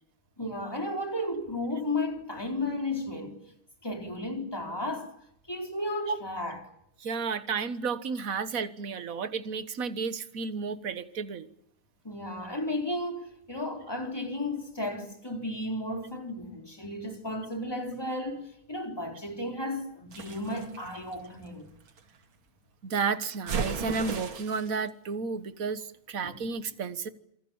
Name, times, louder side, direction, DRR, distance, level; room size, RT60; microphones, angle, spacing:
voice 1, 0.4-3.4 3.8-5.1 5.5-6.6 12.0-21.7 26.2-26.4, left 1 dB, 10° left, 3.9 m, -34 dB
voice 2, 7.0-11.5 22.8-27.1, right 5 dB, 45° right, 1.6 m, -32 dB
sound 1, 20.1-22.0 23.5-24.8, right 5 dB, 75° right, 2.9 m, -35 dB
27.0 x 19.0 x 8.7 m
omnidirectional pair, 2.2 m